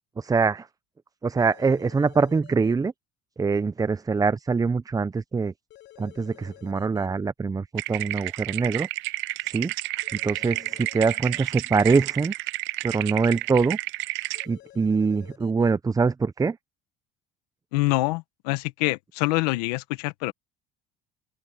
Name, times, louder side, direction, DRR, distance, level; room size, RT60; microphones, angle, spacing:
voice 1, 0.2-0.7 1.2-2.9 3.4-5.5 6.0-8.9 9.4-9.7 10.2-12.3 12.8-13.8 14.5-16.6, right 4 dB, 15° right, 0.6 m, -24 dB
sound 1, 1.4-2.7 5.7-7.1 10.0-11.4 14.3-15.7, left 14 dB, 65° left, 6.0 m, -50 dB
sound 2, 7.8-14.5, right 20 dB, 70° right, 0.7 m, -31 dB
voice 2, 17.7-20.3, left 21 dB, 85° left, 1.1 m, -25 dB
open air
supercardioid pair, 80°, 20 cm